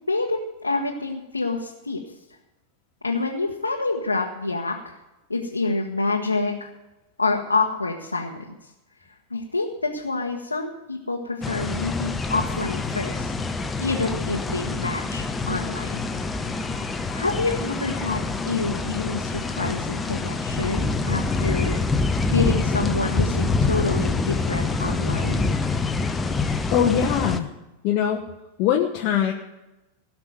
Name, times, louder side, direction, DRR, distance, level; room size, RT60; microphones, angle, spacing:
voice 1, 0.1-2.0 3.0-5.0 5.3-6.7 7.2-8.5 9.3-13.3 13.8-16.1 17.1-21.8 22.3-25.5, left 3 dB, 80° left, -1 dB, 1.3 m, -27 dB
sound 1, 11.4-27.4, left 3 dB, 15° left, 0.9 m, -26 dB
voice 2, 26.7-27.5 27.8-28.2 28.6-29.3, left 9 dB, 40° left, 2 dB, 1.1 m, -21 dB
17.0 x 6.0 x 9.3 m, 1.0 s
figure-of-eight pair, 90°, 0 cm